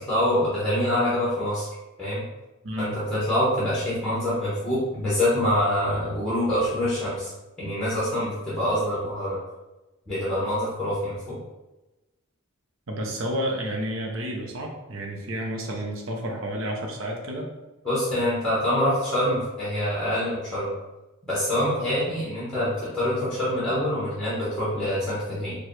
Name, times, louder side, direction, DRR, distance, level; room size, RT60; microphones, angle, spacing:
voice 1, 0.1-1.7 2.0-2.2 2.8-7.3 7.6-9.4 10.1-11.4 17.8-20.7 21.3-25.6, left 1 dB, 5° left, -10 dB, 1.0 m, -25 dB
voice 2, 2.6-3.0 12.9-17.5, equal, 60° right, 1 dB, 0.7 m, -30 dB
4.7 x 2.3 x 3.1 m, 1.0 s
head